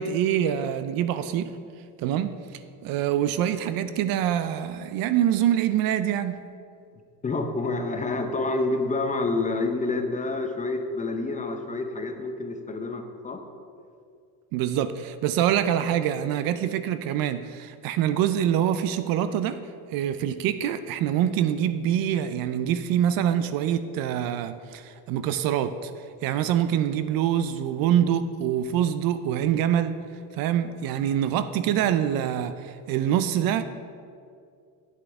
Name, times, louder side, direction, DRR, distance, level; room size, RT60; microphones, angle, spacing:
voice 1, 0.0-1.5 2.0-6.5 14.5-19.6 19.9-25.9 26.2-29.9 30.4-33.6, right 10 dB, 60° right, 12 dB, 0.5 m, -25 dB
voice 2, 7.2-13.4, left 3 dB, 20° left, 5 dB, 0.7 m, -28 dB
8.2 x 7.6 x 3.5 m, 2.3 s
supercardioid pair, 100°, 41 cm